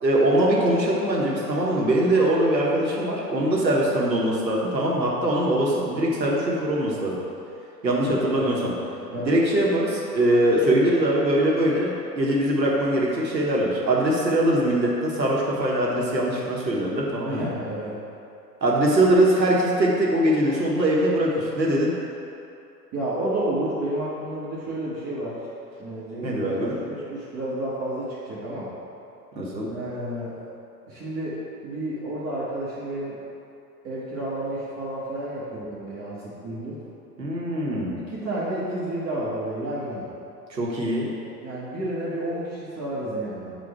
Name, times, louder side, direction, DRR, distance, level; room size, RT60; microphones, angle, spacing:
voice 1, 0.0-7.2 7.8-8.7 9.1-17.5 18.6-22.0 26.2-26.8 29.3-29.7 37.2-38.0 40.5-41.1, right 1 dB, 85° right, -4 dB, 1.3 m, -22 dB
voice 2, 7.9-8.7 9.0-9.3 17.3-18.0 22.9-25.4 25.8-28.7 29.7-30.4 30.9-33.2 33.8-36.8 38.0-40.1 40.8-41.2 41.4-43.5, right 1 dB, 30° right, -10 dB, 1.4 m, -31 dB
8.0 x 2.7 x 4.4 m, 2.7 s
figure-of-eight pair, 100°, 50 cm